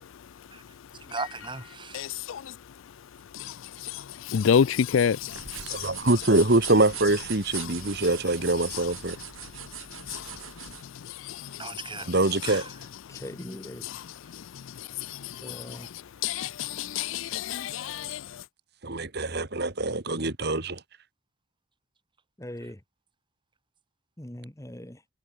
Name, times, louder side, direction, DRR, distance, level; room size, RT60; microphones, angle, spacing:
voice 1, 0.9-2.0 11.6-12.1 12.4-12.7 22.6-22.7, right 4 dB, 25° right, 2.7 m, -37 dB
voice 2, 1.9-2.4 4.3-5.4 5.7-5.9 10.1-10.2 13.8-14.0 16.2-18.2, left 7 dB, 70° left, 0.4 m, -26 dB
sound 1, 5.2-10.8, right 10 dB, 85° right, 7.8 m, -40 dB
voice 3, 5.6-9.2 12.1-12.7 18.8-20.8, right 2 dB, 55° right, 2.0 m, -24 dB
voice 4, 13.1-13.8 15.4-15.9 22.4-22.8 24.2-25.0, left 1 dB, 15° left, 1.4 m, -40 dB
head